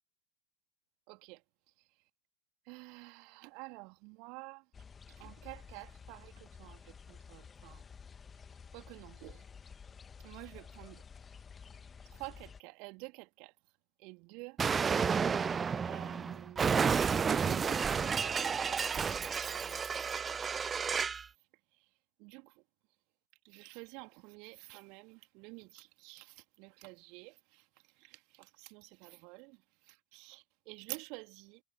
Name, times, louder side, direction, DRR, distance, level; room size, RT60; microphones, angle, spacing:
voice 1, 1.1-1.4 1.8-1.9 2.6-4.6 5.1-7.8 8.7-9.4 10.2-11.0 12.0-13.5 14.0-14.6 15.8-20.0 20.9-21.1 21.7-21.9 22.2-22.6 23.4-31.6, right 30 dB, 45° right, 2.2 m, -50 dB
sound 1, 4.7-12.6, left 6 dB, 20° left, 1.7 m, -52 dB
Explosion, 14.6-21.2, right 6 dB, 20° right, 0.5 m, -31 dB
figure-of-eight pair, 90°, 0 cm